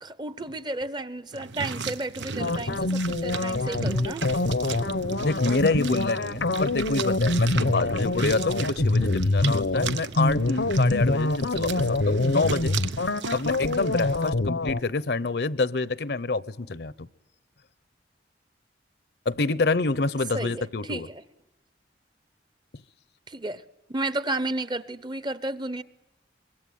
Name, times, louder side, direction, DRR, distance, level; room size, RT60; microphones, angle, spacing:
voice 1, 0.0-4.3 20.3-21.2 23.3-23.6 23.9-25.8, right 2 dB, 25° right, 0.9 m, -32 dB
sound 1, 1.3-14.3, right 4 dB, 80° right, 1.0 m, -36 dB
sound 2, 2.4-14.8, left 2 dB, 85° left, 1.1 m, -25 dB
voice 2, 5.2-12.8 13.3-17.1 19.3-21.1, left 3 dB, 60° left, 0.8 m, -27 dB
25.0 x 22.0 x 9.3 m
head